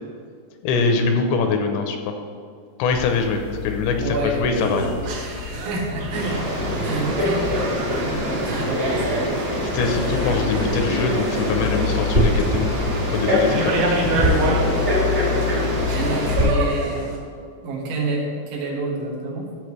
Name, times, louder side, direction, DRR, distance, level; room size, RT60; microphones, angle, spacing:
voice 1, 0.6-2.2 2.8-4.9 9.6-14.0, left 4 dB, 85° left, 5 dB, 2.9 m, -23 dB
sound 1, 2.9-16.7, left 10 dB, 55° left, 1.4 m, -31 dB
voice 2, 4.0-4.4 5.7-6.5 6.8-9.2 15.3-15.6 15.9-17.2 17.6-19.5, right 2 dB, 85° right, -3 dB, 4.1 m, -28 dB
sound 2, 4.5-17.2, right 1 dB, 70° right, 3.5 m, -28 dB
Frog, 6.1-16.5, equal, 40° right, 1.3 m, -24 dB
15.0 x 7.0 x 3.3 m, 2.2 s
omnidirectional pair, 5.3 m